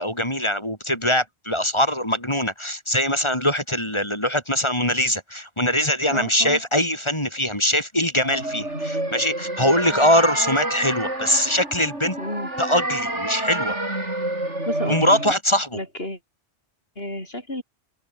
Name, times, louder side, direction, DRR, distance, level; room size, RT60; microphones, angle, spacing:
voice 1, 0.0-12.2 12.6-13.8 14.9-15.8, equal, 25° left, 6.4 m, -22 dB
voice 2, 6.0-6.6 9.7-9.9 12.2-12.5 14.7-15.0 15.7-16.2 17.0-17.6, left 1 dB, 55° left, 8.1 m, -31 dB
sound 1, 8.2-15.3, right 1 dB, 85° right, 7.6 m, -28 dB
omnidirectional pair, 1.2 m